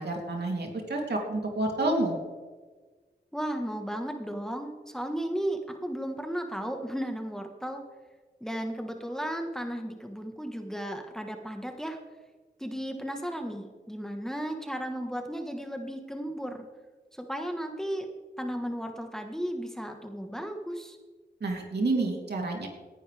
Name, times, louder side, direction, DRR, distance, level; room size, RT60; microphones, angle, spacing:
voice 1, 0.0-2.2 21.4-22.7, right 2 dB, 70° right, 0 dB, 3.2 m, -29 dB
voice 2, 3.3-7.8 8.4-12.0 12.6-16.6 17.1-18.1 18.4-21.0, equal, 5° left, 4 dB, 1.4 m, -34 dB
18.0 x 11.0 x 3.5 m, 1.3 s
wide cardioid pair, 75°, 18 cm